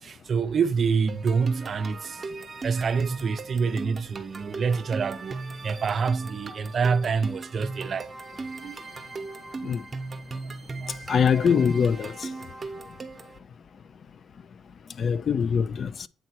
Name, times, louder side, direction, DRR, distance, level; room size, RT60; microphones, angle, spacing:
voice 1, 0.0-2.2 2.6-8.1 8.4-8.8 10.8-11.2, right 5 dB, 50° right, 0.4 m, -27 dB
sound 1, 1.1-13.4, right 3 dB, 30° right, 0.9 m, -38 dB
voice 2, 11.1-12.3 15.0-16.1, left 7 dB, 50° left, 0.4 m, -23 dB
8.4 x 3.1 x 4.3 m
cardioid pair, 90°, 0 cm